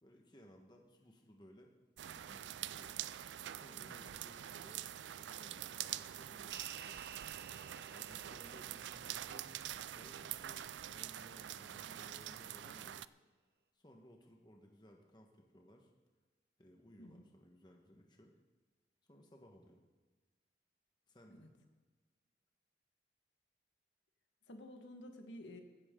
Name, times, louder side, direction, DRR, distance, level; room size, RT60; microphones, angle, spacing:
voice 1, 0.0-1.7 2.0-4.8 5.1-7.0 7.9-13.1 13.7-15.9 16.6-18.3 19.1-19.8 21.1-21.4, equal, 25° left, 2 dB, 1.4 m, -61 dB
sound 1, 2.0-13.1, right 11 dB, 80° right, 0.4 m, -45 dB
sound 2, 6.5-11.2, right 7 dB, 60° right, 0.9 m, -56 dB
voice 2, 24.5-25.6, left 1 dB, 85° left, 4 dB, 1.7 m, -52 dB
15.5 x 14.5 x 3.9 m, 1.3 s
head